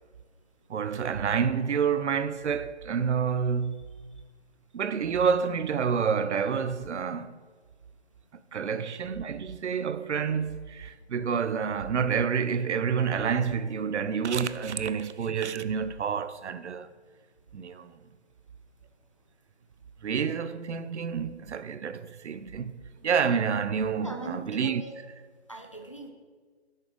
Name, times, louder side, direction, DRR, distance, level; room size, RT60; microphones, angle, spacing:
voice 1, 0.7-3.8 4.7-7.3 8.5-16.9 17.5-17.9 20.0-24.8, right 6 dB, 90° right, 0.5 m, -28 dB
voice 2, 24.0-25.1 25.5-26.1, right 2 dB, 30° left, 0.4 m, -40 dB
6.3 x 3.7 x 5.0 m
figure-of-eight pair, 155°, 33 cm